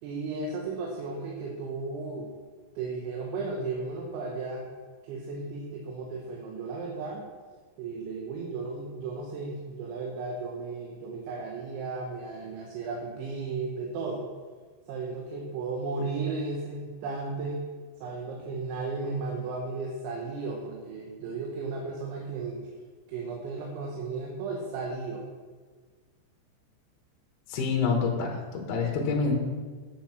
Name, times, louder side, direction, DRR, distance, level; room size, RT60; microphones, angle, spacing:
voice 1, 0.0-2.3 2.8-4.7 5.0-7.3 7.8-14.2 14.9-17.6 18.0-22.7 23.1-25.2, right 3 dB, 80° right, -1 dB, 3.6 m, -34 dB
voice 2, 27.5-29.3, left 5 dB, 65° left, 0 dB, 3.1 m, -27 dB
9.9 x 8.7 x 6.0 m, 1.5 s
omnidirectional pair, 5.3 m